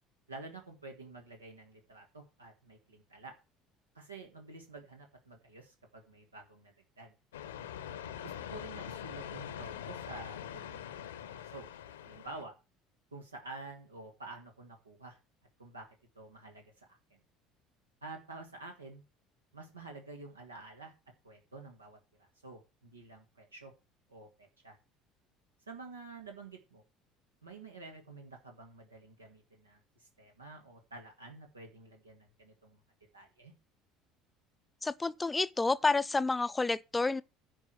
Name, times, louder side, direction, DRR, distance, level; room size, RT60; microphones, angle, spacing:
voice 1, 0.3-3.3 3.9-7.1 8.2-11.7 12.0-12.5 13.1-15.2 15.6-15.9 16.1-17.0 18.0-19.0 19.5-20.9 21.2-23.7 24.1-24.8 25.7-26.8 27.4-32.8 33.1-33.5, right 3 dB, 85° right, 1.5 m, -49 dB
sound 1, 7.3-12.4, left 9 dB, 75° left, 0.9 m, -43 dB
voice 2, 34.8-37.2, left 3 dB, 15° left, 0.5 m, -29 dB
10.5 x 4.9 x 7.7 m
figure-of-eight pair, 65°, 0 cm